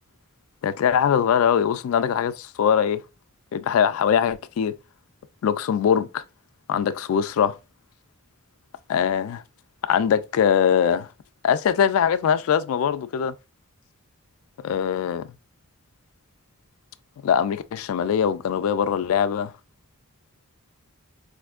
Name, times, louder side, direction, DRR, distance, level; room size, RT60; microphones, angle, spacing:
voice 1, 0.6-3.0 3.5-4.7 5.4-6.2 6.7-7.6 8.9-9.4 9.8-11.1 11.4-13.3 14.6-15.3 17.2-19.5, left 8 dB, 70° left, 0.3 m, -22 dB
4.2 x 2.6 x 2.3 m
head